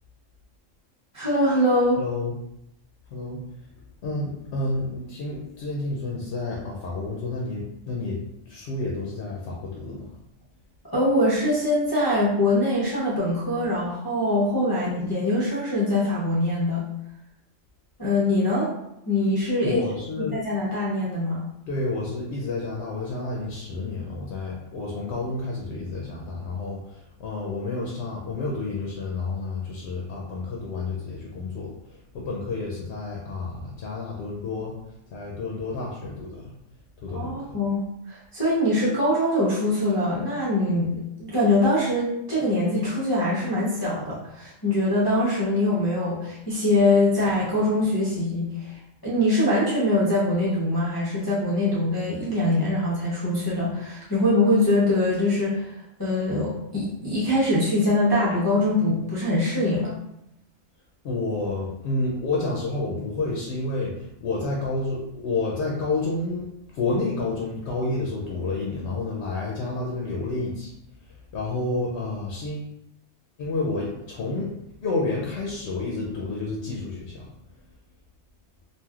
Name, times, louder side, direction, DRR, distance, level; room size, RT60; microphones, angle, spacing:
voice 1, 1.1-2.0 10.9-16.8 18.0-18.7 19.1-19.8 20.2-21.4 37.1-59.9, left 1 dB, 30° left, -9 dB, 0.4 m, -23 dB
voice 2, 2.0-2.3 3.1-3.4 4.0-10.1 19.6-20.4 21.7-34.8 35.1-36.5 37.0-37.6 61.0-70.7 71.1-72.7 73.4-74.5 74.8-77.3, left 3 dB, 65° left, -3 dB, 0.8 m, -30 dB
3.2 x 2.4 x 2.3 m, 0.83 s
omnidirectional pair, 1.4 m